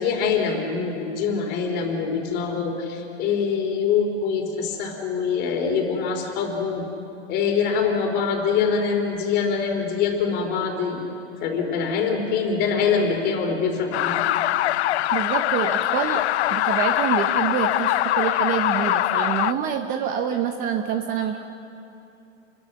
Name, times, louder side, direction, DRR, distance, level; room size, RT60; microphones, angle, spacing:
voice 1, 0.0-6.9 7.3-11.0 11.4-14.2, left 6 dB, 30° left, 3 dB, 3.6 m, -24 dB
sound 1, 13.9-19.5, left 14 dB, 65° left, 0.6 m, -22 dB
voice 2, 15.1-16.2 16.5-21.5, right 8 dB, 25° right, 6 dB, 0.9 m, -26 dB
29.0 x 22.5 x 6.0 m, 2.8 s
hypercardioid pair, 150°, 35 cm